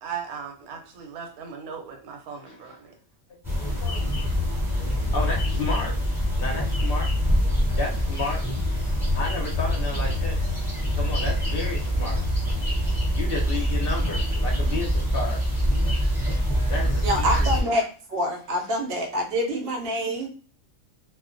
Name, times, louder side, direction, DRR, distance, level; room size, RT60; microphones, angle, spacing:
voice 1, 0.0-2.9, right 7 dB, 85° right, 3 dB, 1.1 m, -37 dB
sound 1, 3.4-17.6, equal, ahead, 1.0 m, -25 dB
voice 2, 3.5-4.1 4.7-6.0 6.4-7.1 7.8-8.4 9.1-10.4 10.8-12.2 13.1-15.5 15.8-16.1 16.6-17.7, left 3 dB, 55° left, -1 dB, 0.7 m, -32 dB
voice 3, 17.0-17.8 18.1-20.3, equal, 60° right, 1 dB, 0.6 m, -26 dB
2.3 x 2.1 x 2.5 m, 0.39 s
omnidirectional pair, 1.5 m